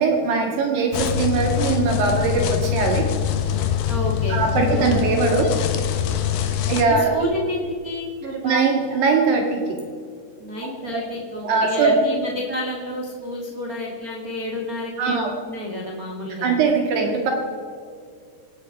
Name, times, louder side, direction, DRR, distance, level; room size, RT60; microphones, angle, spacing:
voice 1, 0.0-3.1 4.3-5.5 6.7-7.3 8.4-9.8 10.6-11.1 11.4-12.0 15.0-15.3 16.4-17.3, right 4 dB, 70° right, 1 dB, 3.6 m, -21 dB
sound 1, 0.9-6.8, left 9 dB, 70° left, 2.3 m, -24 dB
voice 2, 3.9-5.0 6.9-8.6 10.4-16.6, left 1 dB, 45° right, -1 dB, 1.1 m, -30 dB
26.5 x 9.4 x 4.8 m, 2.2 s
omnidirectional pair, 5.1 m